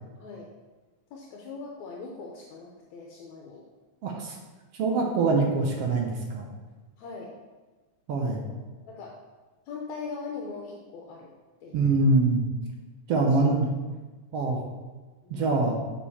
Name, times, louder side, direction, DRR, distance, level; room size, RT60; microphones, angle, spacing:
voice 1, 0.2-0.5 1.1-3.6 7.0-7.3 8.2-8.6 8.9-9.2 9.7-11.3 11.6-11.9 13.3-13.6 15.2-15.4, left 4 dB, 75° left, 0 dB, 2.1 m, -41 dB
voice 2, 4.0-4.4 4.7-6.5 8.1-8.4 11.7-12.4 13.1-13.7 14.3-14.6 15.3-15.8, right 3 dB, 65° right, 1 dB, 1.8 m, -24 dB
7.1 x 6.9 x 4.3 m, 1.3 s
omnidirectional pair, 3.4 m